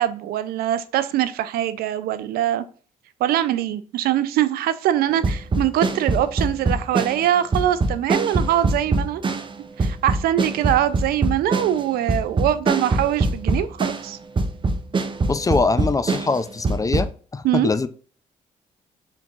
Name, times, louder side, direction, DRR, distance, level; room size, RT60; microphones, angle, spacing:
voice 1, 0.0-2.6 3.2-9.2 9.8-14.2 17.4-17.7, right 12 dB, 75° right, 0.4 m, -23 dB
sound 1, 5.2-14.1 14.4-17.1, right 3 dB, 30° right, 0.6 m, -23 dB
voice 2, 15.3-17.9, left 3 dB, 20° left, 0.4 m, -23 dB
4.5 x 3.6 x 2.4 m
supercardioid pair, 55°, 16 cm